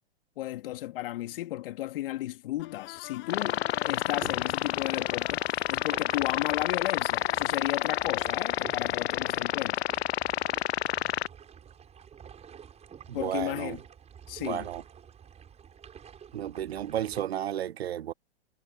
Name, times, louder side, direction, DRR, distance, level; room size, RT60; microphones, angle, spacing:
voice 1, 0.4-9.9 13.1-13.8 14.3-14.7, left 15 dB, 60° left, 2.5 m, -34 dB
sound 1, 2.6-10.2, left 19 dB, 35° left, 6.6 m, -46 dB
sound 2, 3.3-11.3, left 12 dB, 80° left, 0.5 m, -29 dB
sound 3, 4.2-17.2, right 8 dB, 20° right, 6.3 m, -49 dB
voice 2, 13.1-13.8 14.4-14.8 16.3-18.1, right 11 dB, 75° right, 1.1 m, -33 dB
hypercardioid pair, 120°, 32 cm